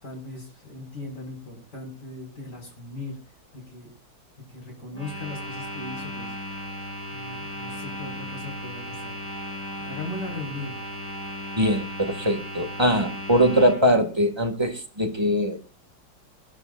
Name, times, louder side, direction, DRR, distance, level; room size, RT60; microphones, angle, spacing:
voice 1, 0.0-3.2 3.5-3.9 4.5-6.4 7.1-9.2 9.8-10.8, left 2 dB, 55° left, 2 dB, 6.2 m, -38 dB
sound 1, 4.9-13.8, equal, 15° left, 7.9 m, -36 dB
voice 2, 11.6-15.6, equal, 15° right, 3 dB, 2.1 m, -22 dB
23.5 x 13.5 x 2.6 m, 0.34 s
omnidirectional pair, 2.2 m